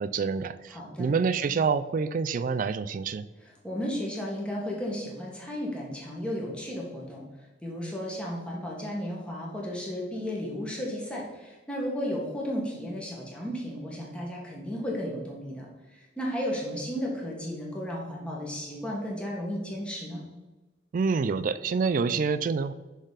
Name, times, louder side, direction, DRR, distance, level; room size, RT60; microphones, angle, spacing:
voice 1, 0.0-3.3 20.9-22.7, right 5 dB, 45° right, 14 dB, 0.3 m, -27 dB
voice 2, 0.7-1.1 3.4-7.2 7.6-20.2, equal, 5° left, -3 dB, 1.5 m, -34 dB
6.4 x 4.0 x 4.9 m, 1.1 s
head